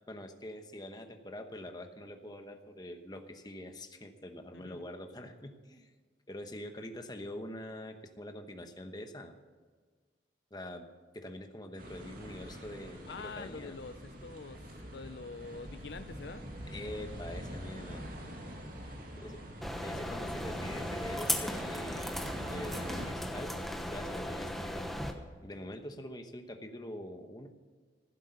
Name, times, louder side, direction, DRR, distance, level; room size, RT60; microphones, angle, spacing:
voice 1, 0.1-5.9 6.3-9.3 10.5-10.9 11.1-13.8 16.7-18.0 19.2-19.4 19.8-22.1 22.5-23.6 23.9-24.9 25.4-27.5, left 1 dB, 20° left, 6 dB, 1.1 m, -44 dB
voice 2, 4.5-4.9 13.1-16.5, left 4 dB, 65° left, 11 dB, 0.5 m, -45 dB
sound 1, 11.8-23.1, equal, 50° right, 2.3 m, -44 dB
sound 2, 19.6-25.1, equal, ahead, 1.0 m, -37 dB
15.0 x 8.1 x 6.8 m, 1.5 s
head